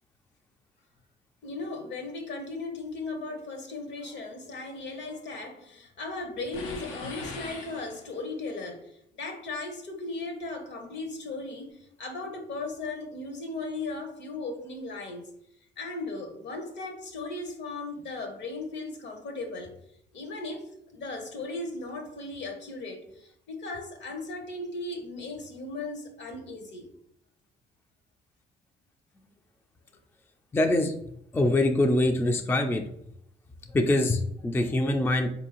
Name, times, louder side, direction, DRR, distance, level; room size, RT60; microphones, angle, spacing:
voice 1, 1.4-15.3 15.8-19.7 20.1-20.6 20.9-26.9, left 2 dB, 65° left, 5 dB, 0.9 m, -37 dB
sound 1, 6.5-8.4, left 4 dB, 90° left, 0.6 m, -40 dB
voice 2, 30.5-30.9 31.3-32.9 33.7-35.3, left 1 dB, 10° left, 4 dB, 0.3 m, -24 dB
4.0 x 2.6 x 2.9 m, 0.74 s
cardioid pair, 90°, 20 cm